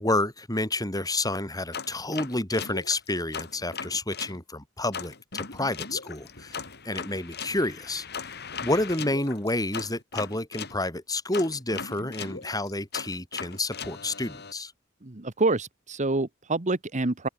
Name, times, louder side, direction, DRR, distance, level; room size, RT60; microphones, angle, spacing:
voice 1, 0.0-6.6 6.8-8.3 8.6-14.7, left 2 dB, 20° left, 7.6 m, -29 dB
sound 1, 1.7-4.4 4.9-10.8 11.3-14.5, left 5 dB, 55° left, 7.6 m, -38 dB
voice 2, 15.0-17.3, right 2 dB, 35° right, 1.3 m, -27 dB
head